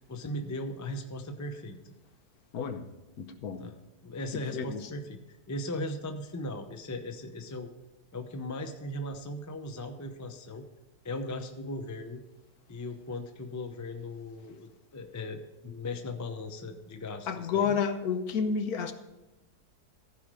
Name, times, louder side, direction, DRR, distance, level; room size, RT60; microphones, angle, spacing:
voice 1, 0.0-1.9 3.6-3.8 4.0-7.7 8.1-10.7 11.0-12.2 12.7-17.8, left 1 dB, 25° left, 6 dB, 0.3 m, -38 dB
voice 2, 2.5-2.9 3.2-3.6 4.3-4.9 17.3-18.9, left 6 dB, 65° left, 9 dB, 1.3 m, -30 dB
15.0 x 5.1 x 6.2 m, 1.0 s
omnidirectional pair, 1.8 m